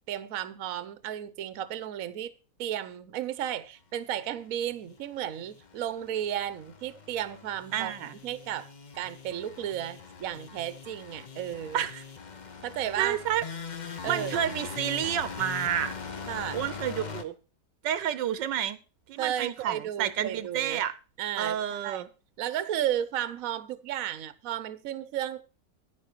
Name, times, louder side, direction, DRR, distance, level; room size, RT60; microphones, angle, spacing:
voice 1, 0.1-2.3 2.6-7.9 8.2-8.7 8.9-11.8 12.6-13.2 14.0-14.5 16.3-16.7 19.2-20.8 21.2-21.6 21.8-22.0 22.4-25.4, right 11 dB, 60° right, 1.1 m, -33 dB
sound 1, 4.9-17.2, left 5 dB, 35° left, 0.7 m, -42 dB
voice 2, 7.7-8.1 11.7-12.0 13.0-13.4 14.1-15.9 16.5-17.3 17.8-18.8 19.1-20.9 21.4-22.1, right 10 dB, 85° right, 1.4 m, -30 dB
10.5 x 10.0 x 4.6 m
omnidirectional pair, 1.9 m